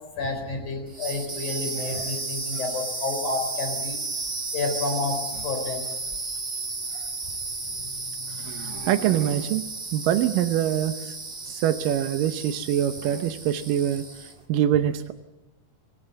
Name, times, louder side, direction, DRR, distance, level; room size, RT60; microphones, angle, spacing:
voice 1, 0.2-4.0 4.5-5.2 5.4-5.8, left 3 dB, 50° left, 4 dB, 5.5 m, -29 dB
sound 1, 0.9-14.4, right 3 dB, 30° right, 1.1 m, -34 dB
voice 2, 8.4-9.6 9.9-11.1 11.5-14.0 14.5-15.1, right 10 dB, 70° right, 8 dB, 2.3 m, -24 dB
25.5 x 17.0 x 7.8 m, 1.1 s
omnidirectional pair, 4.4 m